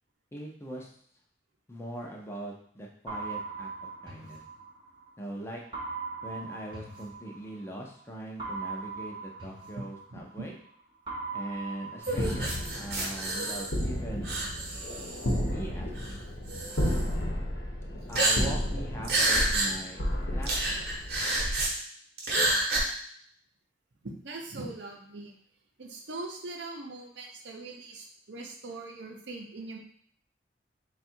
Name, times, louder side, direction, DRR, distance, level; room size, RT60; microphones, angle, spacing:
voice 1, 0.3-0.9 1.7-3.7 4.0-4.4 5.2-5.6 6.2-10.5 11.3-14.3 15.5-16.3 18.1-20.0 20.3-20.8, right 1 dB, 15° left, -1 dB, 0.5 m, -41 dB
sound 1, 3.1-5.1 5.7-7.8 8.4-10.7 11.1-13.1, right 4 dB, 25° right, 0.8 m, -40 dB
voice 2, 9.8-10.5 24.0-25.4 25.8-29.8, right 2 dB, 80° right, 1 dB, 0.7 m, -41 dB
sound 2, 12.0-13.9 14.2-15.4 16.0-16.1 16.5-17.0 18.1-18.7 19.0-19.7 20.0-20.1 20.4-21.7 22.2-22.8, right 2 dB, 55° right, 0.9 m, -29 dB
sound 3, 12.1-21.4, equal, 70° left, 0.9 m, -33 dB
3.5 x 2.4 x 4.4 m, 0.62 s
head